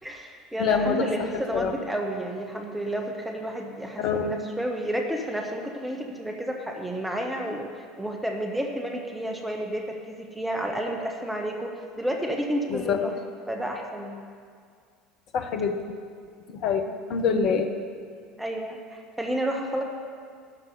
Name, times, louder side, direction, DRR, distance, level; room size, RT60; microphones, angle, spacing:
voice 1, 0.0-13.1 13.5-14.2 18.4-19.8, right 1 dB, 10° right, 2 dB, 1.8 m, -31 dB
voice 2, 0.6-1.1 1.5-1.7 4.0-4.3 12.7-13.0 15.3-15.8 16.5-16.8 17.1-17.7, left 6 dB, 50° left, 6 dB, 1.2 m, -25 dB
13.0 x 6.0 x 9.6 m, 2.2 s
figure-of-eight pair, 65°, 0 cm